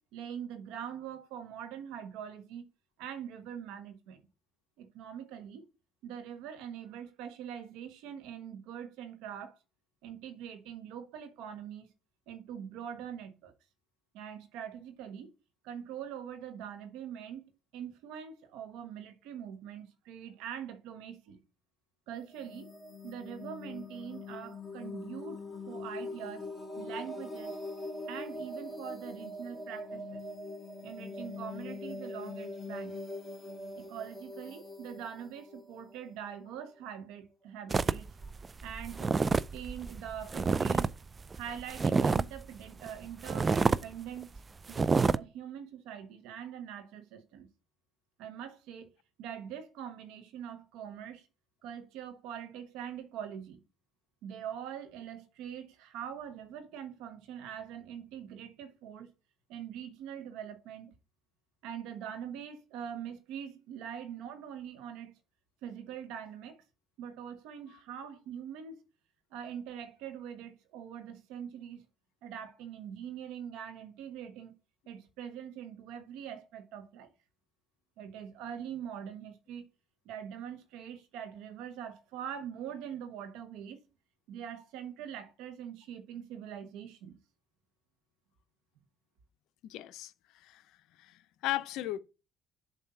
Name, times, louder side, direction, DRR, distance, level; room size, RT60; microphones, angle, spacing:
voice 1, 0.1-2.7 3.0-4.2 4.8-5.6 6.0-9.6 10.0-11.9 12.3-13.5 14.1-15.3 15.6-21.4 22.1-22.7 23.0-26.5 26.8-27.6 28.1-30.2 30.8-33.0 33.8-38.1 38.6-39.1 39.5-40.9 41.3-44.3 44.7-47.5 48.2-48.9 49.2-51.3 51.6-53.6 54.2-59.1 59.5-60.9 61.6-65.2 65.6-66.6 67.0-68.8 69.3-71.8 72.2-74.6 74.9-77.1 78.0-79.6 80.0-83.8 84.3-87.2, right 9 dB, 85° right, 1.1 m, -43 dB
sound 1, 22.2-36.8, left 2 dB, 15° left, 2.4 m, -43 dB
sound 2, 37.7-40.9 41.2-42.4 42.8-42.9 43.2-43.8 44.2-44.4 44.7-45.2, right 4 dB, 30° right, 0.3 m, -28 dB
voice 2, 89.7-90.1 90.4-90.6 91.0-92.0, left 15 dB, 80° left, 0.5 m, -36 dB
7.4 x 2.7 x 5.5 m
supercardioid pair, 80°, 0 cm